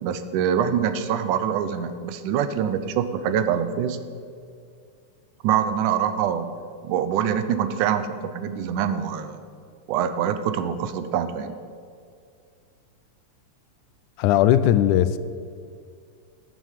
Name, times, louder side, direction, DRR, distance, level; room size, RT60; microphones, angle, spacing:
voice 1, 0.0-4.0 5.4-6.5 6.8-9.4 9.9-11.6, right 8 dB, 90° right, 11 dB, 2.2 m, -24 dB
voice 2, 14.2-15.2, left 11 dB, 85° left, 14 dB, 2.0 m, -18 dB
11.5 x 7.4 x 7.4 m, 2.3 s
omnidirectional pair, 3.5 m